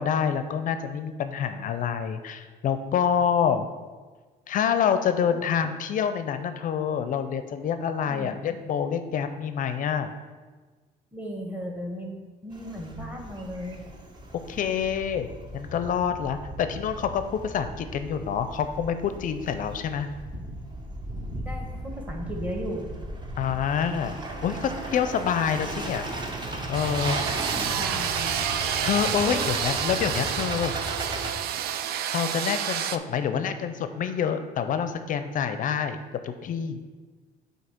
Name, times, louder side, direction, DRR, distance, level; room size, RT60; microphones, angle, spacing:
voice 1, 0.0-3.7 4.5-10.1 14.5-15.3 15.5-20.1 23.4-24.2 24.4-26.1 26.7-27.2 28.8-30.7 32.1-36.0 36.2-36.8, left 7 dB, 50° left, 9 dB, 0.5 m, -27 dB
voice 2, 8.0-8.4 11.1-13.9 21.4-22.9 27.5-28.4 29.2-29.4, equal, 10° right, 2 dB, 1.2 m, -36 dB
sound 1, 12.5-31.3, right 1 dB, 25° right, 0.9 m, -36 dB
sound 2, 26.7-33.0, right 10 dB, 65° right, 0.4 m, -29 dB
7.8 x 2.8 x 5.8 m, 1.4 s
cardioid pair, 110°, 17 cm